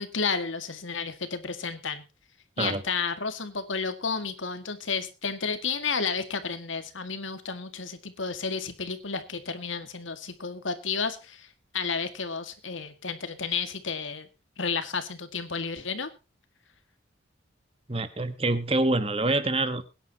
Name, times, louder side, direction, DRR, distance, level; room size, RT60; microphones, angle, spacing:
voice 1, 0.0-2.0 2.6-11.5 11.7-14.3 14.6-16.1, left 5 dB, 90° left, 9 dB, 1.9 m, -32 dB
voice 2, 17.9-19.8, right 2 dB, 30° right, 12 dB, 1.3 m, -26 dB
21.5 x 10.0 x 2.9 m, 0.29 s
head